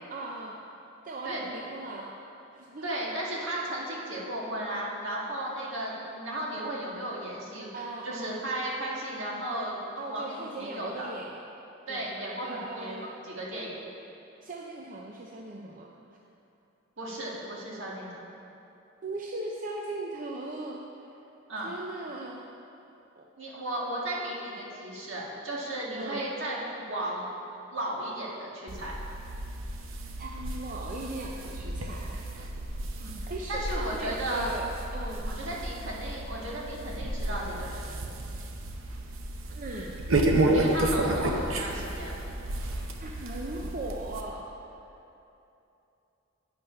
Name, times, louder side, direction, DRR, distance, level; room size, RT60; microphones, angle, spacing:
voice 1, 0.1-0.6 1.0-2.1 2.5-3.0 7.7-8.3 10.0-11.4 11.9-12.1 12.4-13.1 14.4-15.9 19.0-21.2 21.6-22.4 23.2-23.3 25.9-26.3 30.2-32.2 33.3-35.6 39.5-39.9 40.3-40.7 41.0-41.6 42.7-44.4, right 2 dB, 40° right, -1 dB, 0.5 m, -39 dB
voice 2, 2.8-9.8 10.1-11.1 11.9-13.7 17.0-18.2 21.5-21.7 23.4-27.3 27.7-29.0 33.0-34.5 35.3-37.9 40.5-42.1, right 1 dB, 70° right, -4 dB, 1.7 m, -35 dB
sound 1, 28.7-44.2, right 1 dB, 85° right, 0.7 m, -32 dB
9.4 x 5.5 x 5.6 m, 2.8 s
head